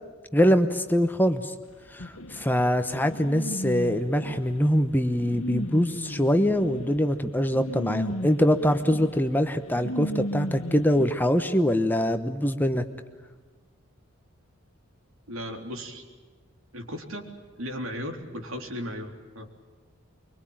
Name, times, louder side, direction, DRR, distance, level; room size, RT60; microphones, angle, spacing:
voice 1, 0.3-1.5 1.9-12.8, equal, 10° left, 8 dB, 1.0 m, -23 dB
sound 1, 2.0-11.1, equal, 70° left, 1.7 m, -35 dB
voice 2, 15.3-16.0 16.7-17.3 17.6-19.5, equal, 80° right, 3 dB, 3.9 m, -36 dB
24.5 x 24.0 x 9.0 m, 1.4 s
head